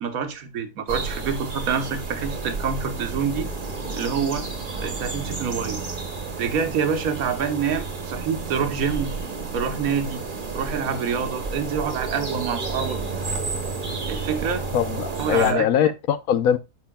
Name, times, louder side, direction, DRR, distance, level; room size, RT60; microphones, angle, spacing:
voice 1, 0.0-3.5 4.0-4.5 4.8-5.9 6.4-9.1 9.5-10.2 10.5-13.0 14.1-14.6 15.2-15.7, right 6 dB, 80° right, 1.4 m, -26 dB
sound 1, 0.9-15.5, right 4 dB, 40° right, 1.4 m, -31 dB
voice 2, 14.7-16.6, left 9 dB, 85° left, 1.2 m, -21 dB
9.7 x 6.2 x 2.2 m
omnidirectional pair, 1.5 m